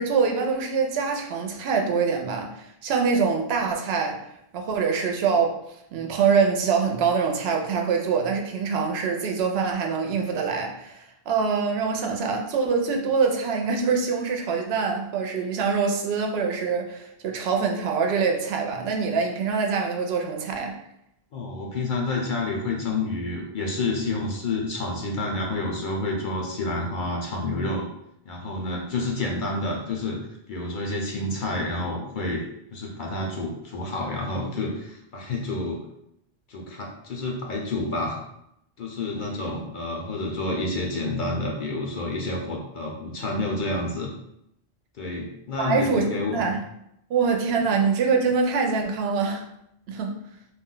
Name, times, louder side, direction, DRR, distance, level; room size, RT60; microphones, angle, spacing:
voice 1, 0.0-4.2 4.5-5.6 5.9-20.8 45.6-46.6 47.1-49.5 49.9-50.2, right 5 dB, 80° right, 2 dB, 0.8 m, -24 dB
voice 2, 21.3-27.9 28.3-30.2 30.5-32.4 32.7-35.9 36.5-38.2 38.8-44.1 45.0-46.5, left 2 dB, 60° left, -1 dB, 0.6 m, -29 dB
2.4 x 2.1 x 3.7 m, 0.78 s
omnidirectional pair, 1.0 m